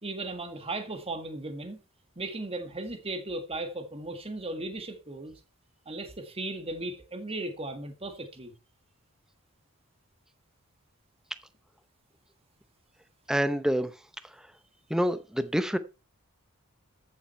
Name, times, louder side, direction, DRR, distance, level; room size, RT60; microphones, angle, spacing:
voice 1, 0.0-1.8 2.1-5.3 5.8-8.5, right 2 dB, 25° right, 1.8 m, -36 dB
voice 2, 13.3-13.9 14.2-14.5 14.9-15.8, equal, 5° right, 0.7 m, -27 dB
13.5 x 7.1 x 4.4 m
head